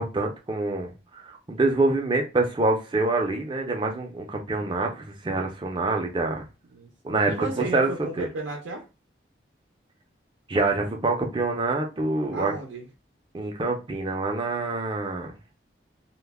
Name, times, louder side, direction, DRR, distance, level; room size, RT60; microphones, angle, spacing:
voice 1, 0.0-6.4 7.0-7.9 8.2-8.3 10.5-12.5 13.3-15.3, right 2 dB, 25° right, 2 dB, 0.4 m, -26 dB
voice 2, 4.6-5.0 6.7-8.8 12.3-12.9, right 2 dB, 90° right, 1 dB, 0.5 m, -35 dB
2.2 x 2.0 x 3.3 m, 0.30 s
head